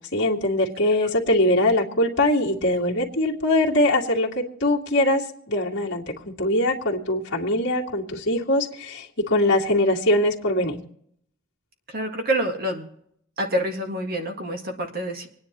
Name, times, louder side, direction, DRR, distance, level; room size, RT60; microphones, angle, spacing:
voice 1, 0.1-10.8, left 1 dB, 55° left, -3 dB, 2.2 m, -22 dB
voice 2, 11.9-12.9 13.4-15.3, right 1 dB, 45° right, 3 dB, 1.9 m, -27 dB
26.5 x 10.0 x 3.0 m, 0.68 s
head